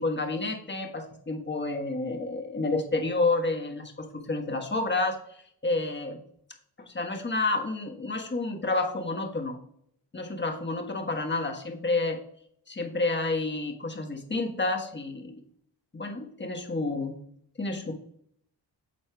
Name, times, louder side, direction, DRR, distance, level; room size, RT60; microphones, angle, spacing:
voice 1, 0.0-6.2 6.9-9.6 10.1-12.2 12.7-15.4 15.9-17.2 17.6-17.9, left 3 dB, 25° left, 3 dB, 1.4 m, -30 dB
12.5 x 4.2 x 2.3 m, 0.70 s
cardioid pair, 60°, 44 cm